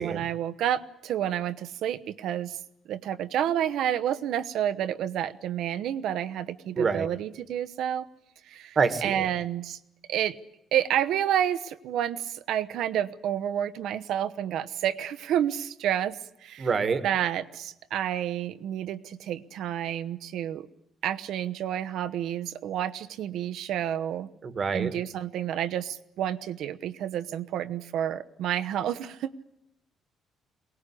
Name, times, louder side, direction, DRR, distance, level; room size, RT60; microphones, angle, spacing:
voice 1, 0.0-2.6 2.9-8.1 8.5-9.8 10.1-10.4 10.7-16.7 17.0-20.7 21.0-24.3 24.7-29.3, right 10 dB, 70° right, 11 dB, 1.0 m, -29 dB
voice 2, 6.7-7.1 8.7-9.3 16.6-17.0 24.4-24.9, right 5 dB, 30° right, 11 dB, 1.5 m, -26 dB
23.0 x 19.0 x 10.0 m, 0.82 s
cardioid pair, 165°, 0 cm